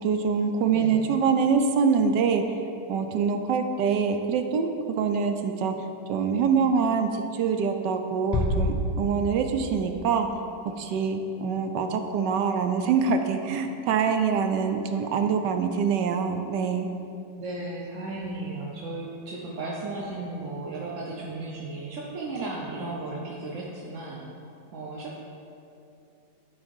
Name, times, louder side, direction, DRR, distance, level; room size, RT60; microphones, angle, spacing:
voice 1, 0.0-2.4 2.9-4.7 5.0-5.7 6.1-10.3 10.8-16.9, right 6 dB, 75° right, 6 dB, 1.2 m, -25 dB
Bass drum, 8.3-9.7, left 1 dB, 15° left, 1.1 m, -27 dB
voice 2, 17.4-24.3 24.7-25.2, right 2 dB, 55° right, -3 dB, 0.9 m, -35 dB
11.0 x 3.9 x 5.3 m, 2.7 s
omnidirectional pair, 2.0 m